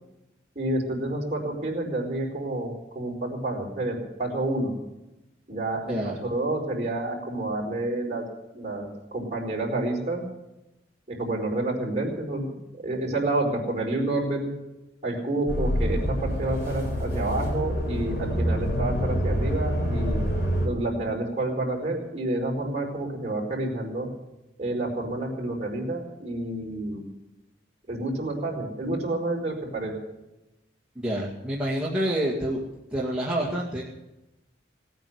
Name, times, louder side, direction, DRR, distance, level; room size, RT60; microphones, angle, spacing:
voice 1, 0.5-4.8 5.5-8.2 8.5-10.2 11.1-14.5 15.0-20.2 20.6-24.1 24.6-27.0 27.9-30.0, right 2 dB, 35° right, -2 dB, 4.7 m, -29 dB
voice 2, 5.9-6.2 31.0-32.6 32.9-33.8, right 1 dB, 5° right, -6 dB, 2.1 m, -27 dB
sound 1, 15.5-20.7, equal, 55° left, 4.2 m, -26 dB
18.5 x 9.1 x 8.1 m, 0.95 s
head